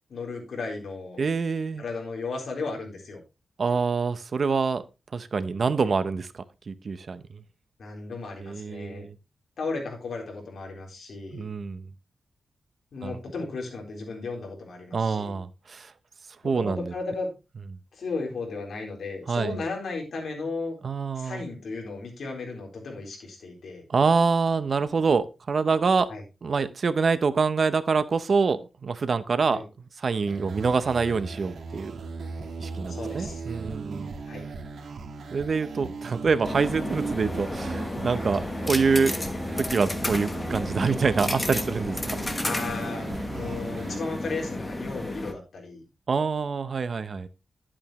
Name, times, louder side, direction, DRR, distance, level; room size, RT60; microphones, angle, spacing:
voice 1, 0.1-1.2 1.8-3.2 5.8-6.0 7.8-9.1 9.6-11.5 12.9-15.4 16.4-17.3 17.9-20.8 21.2-23.8 26.1-26.2 29.5-29.6 32.9-33.4 34.3-34.4 42.4-45.8, left 3 dB, 65° left, 1 dB, 4.0 m, -35 dB
voice 2, 1.2-1.8 3.6-4.8 5.1-6.3 6.7-7.2 8.4-9.1 11.3-11.8 13.0-13.2 14.9-15.9 16.4-16.9 19.3-19.5 20.8-21.4 23.9-26.1 26.4-29.6 30.0-32.0 32.6-34.1 35.3-39.2 39.6-42.2 46.1-47.3, right 5 dB, 45° right, 13 dB, 0.7 m, -26 dB
sound 1, 30.3-44.0, right 4 dB, 70° right, 1.8 m, -37 dB
sound 2, 36.4-45.3, left 2 dB, 15° left, 1.1 m, -32 dB
11.0 x 8.7 x 3.1 m, 0.27 s
wide cardioid pair, 140°, 0 cm